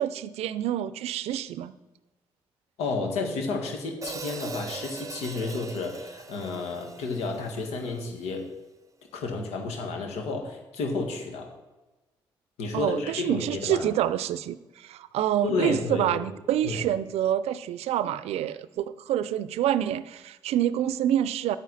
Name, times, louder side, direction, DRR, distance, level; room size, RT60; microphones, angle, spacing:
voice 1, 0.0-1.7 12.7-21.6, right 11 dB, 80° right, 16 dB, 0.5 m, -27 dB
voice 2, 2.8-8.4 9.1-11.5 12.6-13.9 15.4-16.2 16.6-16.8, left 3 dB, 85° left, 2 dB, 1.8 m, -31 dB
Hi-hat, 4.0-8.2, right 4 dB, 30° right, 0.7 m, -41 dB
9.8 x 8.8 x 4.1 m, 1.1 s
supercardioid pair, 50°, 11 cm